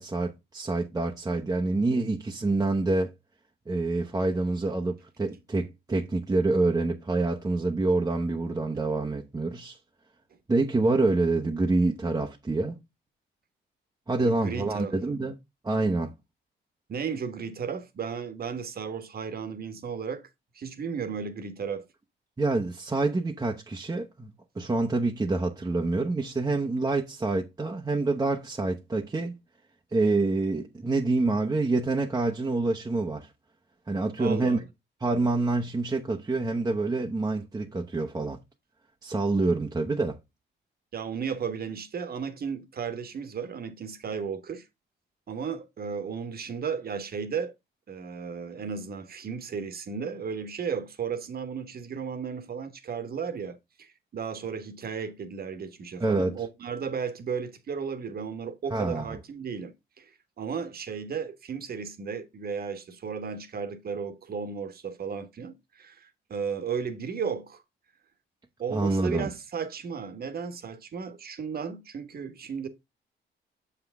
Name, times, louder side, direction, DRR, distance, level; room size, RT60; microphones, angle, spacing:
voice 1, 0.0-3.1 3.7-9.8 10.5-12.8 14.1-15.3 15.6-16.1 22.4-29.3 29.9-33.3 33.9-34.6 35.0-38.4 39.0-40.2 56.0-56.3 58.7-59.2 68.7-69.3, right 2 dB, 20° right, 0.9 m, -27 dB
voice 2, 14.2-14.9 16.9-20.2 20.5-21.8 34.2-34.6 40.9-44.6 45.3-47.5 47.9-60.1 60.4-67.6 68.6-72.7, right 6 dB, 50° right, 1.3 m, -34 dB
6.8 x 5.9 x 3.5 m
cardioid pair, 90°, 20 cm